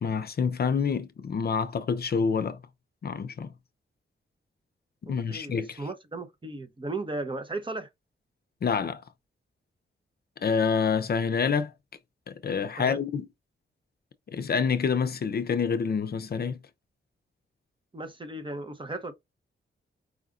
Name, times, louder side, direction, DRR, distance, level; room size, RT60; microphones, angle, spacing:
voice 1, 0.0-2.6 3.0-3.5 5.0-5.8 8.6-9.0 10.4-11.7 12.3-13.3 14.3-16.6, left 6 dB, 50° left, 0.5 m, -27 dB
voice 2, 5.0-7.9 12.8-13.0 17.9-19.1, right 2 dB, 25° right, 0.8 m, -36 dB
4.9 x 2.5 x 3.6 m
wide cardioid pair, 130°, 20 cm